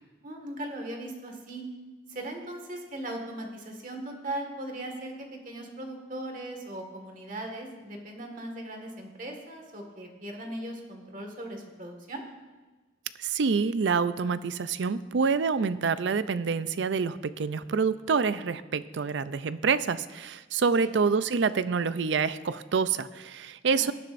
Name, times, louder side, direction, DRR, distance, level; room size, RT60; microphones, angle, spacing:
voice 1, 0.2-1.6 2.1-12.2 20.8-20.9 23.7-23.9, right 1 dB, 40° right, 2 dB, 1.8 m, -38 dB
voice 2, 13.2-23.9, right 5 dB, 65° right, 14 dB, 0.4 m, -27 dB
18.0 x 10.5 x 2.6 m, 1.3 s
head